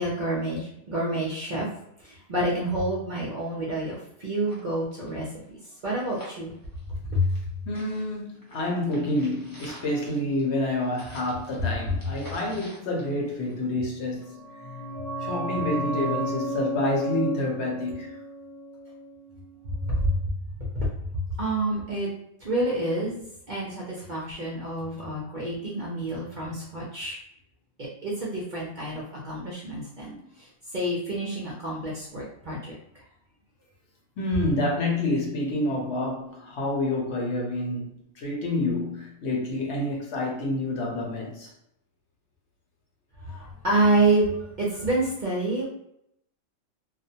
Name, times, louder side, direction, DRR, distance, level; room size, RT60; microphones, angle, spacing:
voice 1, 0.0-1.7 2.0-5.3 5.8-6.5 7.1-7.3 11.6-11.7 19.7-20.9 21.1-22.1 22.4-27.2 27.8-32.8 43.2-45.7, right 1 dB, 55° right, -4 dB, 0.5 m, -28 dB
sound 1, 3.6-3.7 3.9-4.0 4.3-7.5 7.7-13.8 14.2-14.3, equal, 20° left, 0.6 m, -48 dB
voice 2, 7.7-14.4 15.2-18.2 30.0-30.2 34.2-41.5, left 1 dB, 60° left, -1 dB, 0.9 m, -28 dB
sound 2, 14.2-19.7 19.9-20.0, right 1 dB, 85° left, 0.3 m, -33 dB
2.4 x 2.1 x 2.7 m, 0.76 s
omnidirectional pair, 1.3 m